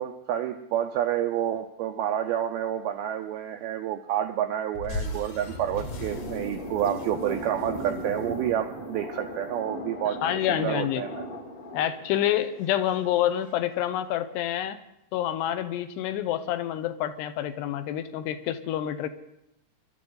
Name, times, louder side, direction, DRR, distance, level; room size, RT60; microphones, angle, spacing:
voice 1, 0.0-10.2 10.5-11.3, right 11 dB, 85° right, 6 dB, 2.2 m, -29 dB
sound 1, 4.7-9.1, left 2 dB, 55° left, 2.7 m, -38 dB
sound 2, 5.1-13.5, equal, 35° left, 1.4 m, -38 dB
voice 2, 10.2-11.0 11.7-14.8 15.1-19.1, left 11 dB, 80° left, 11 dB, 2.8 m, -27 dB
23.0 x 12.5 x 3.9 m, 0.85 s
omnidirectional pair, 5.0 m